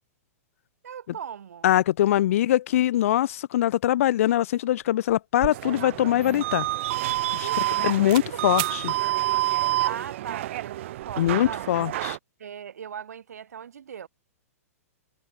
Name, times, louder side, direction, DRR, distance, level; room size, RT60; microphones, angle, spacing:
voice 1, 0.8-1.7 2.1-2.2 7.4-7.6 8.1-8.4 9.5-11.7 12.4-14.1, right 8 dB, 85° right, 3.9 m, -39 dB
voice 2, 1.6-6.7 7.3-7.5 7.8-8.9 11.2-12.2, left 13 dB, 60° left, 0.4 m, -23 dB
sound 1, 4.7-4.8 5.1-7.8 8.1-8.3 8.6-8.8, right 40 dB or more, 35° right, 0.4 m, -37 dB
sound 2, 5.5-12.2, right 15 dB, 55° right, 0.9 m, -28 dB
hypercardioid pair, 155°, 8 cm